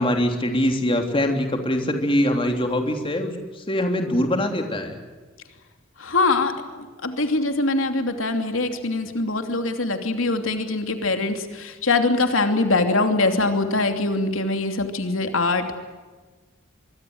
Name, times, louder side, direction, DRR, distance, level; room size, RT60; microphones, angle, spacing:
voice 1, 0.0-5.0, left 1 dB, 25° left, 4 dB, 3.2 m, -23 dB
voice 2, 6.0-6.5 7.0-15.8, left 3 dB, 80° left, 6 dB, 2.9 m, -23 dB
24.5 x 24.5 x 8.0 m, 1.3 s
head